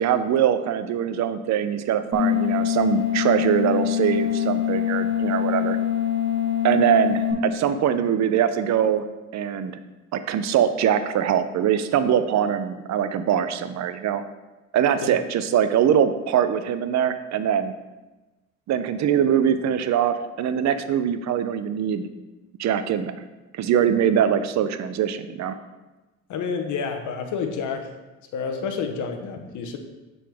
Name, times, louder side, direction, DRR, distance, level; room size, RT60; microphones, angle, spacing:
voice 1, 0.0-5.8 6.6-9.0 9.3-9.8 10.1-14.2 14.7-17.7 18.7-22.1 22.6-23.2 23.5-25.6, right 9 dB, 65° right, 11 dB, 0.5 m, -22 dB
sound 1, 2.1-7.3, left 10 dB, 40° right, 1.7 m, -24 dB
voice 2, 26.3-27.9 28.3-29.8, left 5 dB, 80° left, 5 dB, 0.8 m, -29 dB
7.5 x 4.0 x 3.4 m, 1.1 s
cardioid pair, 90°, 30 cm